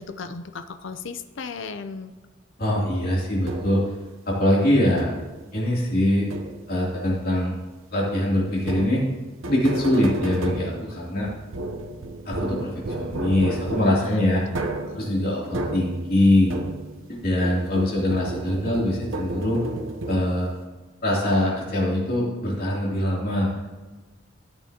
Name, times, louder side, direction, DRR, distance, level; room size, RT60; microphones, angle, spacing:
voice 1, 0.0-2.1 14.0-14.2 14.5-15.0, left 4 dB, 75° left, 9 dB, 0.6 m, -36 dB
voice 2, 2.6-3.8 4.3-5.1 5.5-6.3 6.7-7.5 7.9-9.0 9.5-11.3 12.3-12.7 13.0-14.4 14.9-16.6 17.1-19.6 20.1-20.5 21.0-23.5, left 1 dB, 50° left, -4 dB, 3.0 m, -23 dB
sound 1, 3.5-4.0 5.0-5.4 6.3-6.9 8.6-17.1 17.4-20.6, right 1 dB, 85° right, 0.9 m, -33 dB
14.0 x 8.8 x 2.9 m, 1.2 s
head